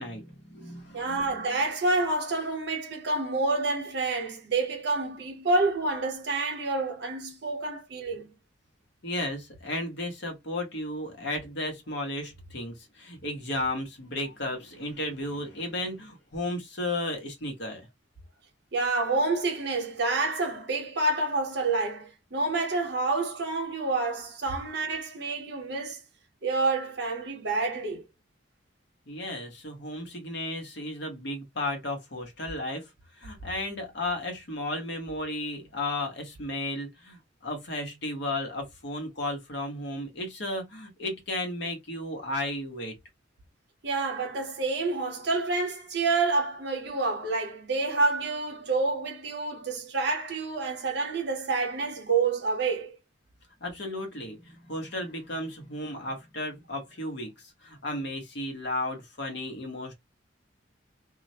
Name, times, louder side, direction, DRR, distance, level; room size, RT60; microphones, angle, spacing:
voice 1, 0.0-1.2 9.0-17.9 29.1-32.9 33.2-43.0 53.6-59.9, left 1 dB, 60° left, 0.9 m, -34 dB
voice 2, 0.9-8.2 18.7-26.0 26.4-28.1 43.8-52.9, right 3 dB, 60° right, 0.8 m, -28 dB
2.2 x 2.0 x 2.6 m
head